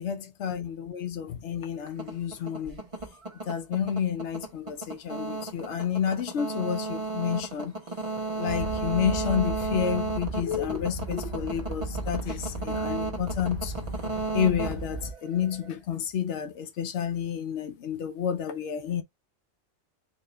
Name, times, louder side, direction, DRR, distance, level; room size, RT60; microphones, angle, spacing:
voice 1, 0.0-2.8 3.5-7.7 8.3-13.7 14.3-19.0, left 8 dB, 70° left, 1.1 m, -30 dB
sound 1, 1.9-15.7, right 3 dB, 30° right, 1.0 m, -34 dB
sound 2, 8.5-15.1, right 1 dB, 45° left, 1.2 m, -36 dB
4.1 x 2.7 x 3.1 m
omnidirectional pair, 1.2 m